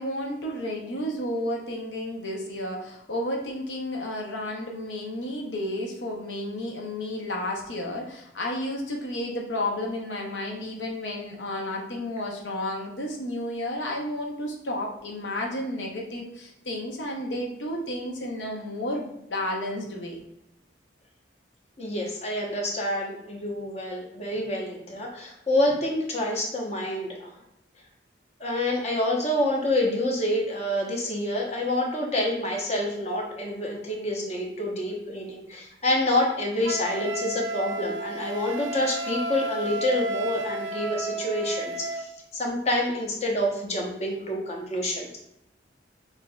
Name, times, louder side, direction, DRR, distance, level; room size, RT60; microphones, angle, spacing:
voice 1, 0.0-20.2, left 1 dB, 80° left, -1 dB, 0.7 m, -32 dB
voice 2, 21.8-27.3 28.4-45.2, left 1 dB, 35° left, 0 dB, 0.9 m, -27 dB
Wind instrument woodwind instrument, 36.6-42.1, right 2 dB, 85° right, 0.4 m, -32 dB
6.0 x 2.7 x 2.2 m, 0.82 s
head